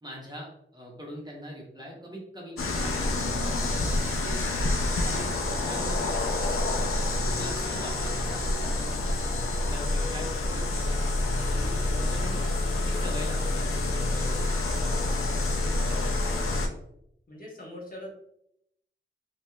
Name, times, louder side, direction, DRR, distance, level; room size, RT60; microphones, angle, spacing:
voice 1, 0.0-4.5 5.0-5.3 5.6-6.6 7.2-9.4 9.7-11.0 11.5-14.8, equal, 20° right, -3 dB, 0.8 m, -43 dB
sound 1, 2.6-16.7, left 2 dB, 90° left, 0.4 m, -27 dB
voice 2, 15.8-16.4 17.3-18.1, left 1 dB, 40° left, -4 dB, 1.0 m, -43 dB
3.0 x 2.6 x 2.2 m, 0.75 s
wide cardioid pair, 75°, 21 cm